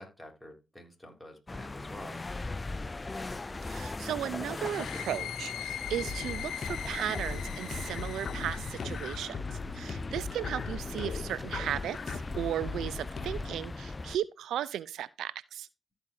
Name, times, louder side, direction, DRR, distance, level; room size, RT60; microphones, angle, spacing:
voice 1, 0.0-2.2, equal, ahead, 4.8 m, -48 dB
sound 1, 1.5-14.2, left 3 dB, 30° left, 0.5 m, -40 dB
voice 2, 3.6-15.7, right 11 dB, 80° right, 0.4 m, -36 dB
sound 2, 4.5-9.3, left 11 dB, 80° left, 1.0 m, -41 dB
sound 3, 5.9-13.5, left 4 dB, 55° left, 1.2 m, -39 dB
14.0 x 5.4 x 2.7 m
supercardioid pair, 50°, 0 cm